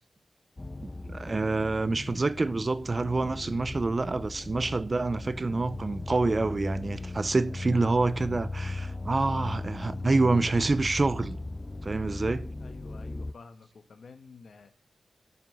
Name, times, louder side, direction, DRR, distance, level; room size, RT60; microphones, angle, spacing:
sound 1, 0.6-13.3, left 2 dB, 25° left, 0.4 m, -38 dB
voice 1, 0.8-11.4 11.8-12.5, right 3 dB, 35° right, 0.5 m, -27 dB
voice 2, 12.6-14.7, left 4 dB, 75° left, 1.3 m, -50 dB
7.0 x 6.2 x 6.8 m
wide cardioid pair, 105°, 0 cm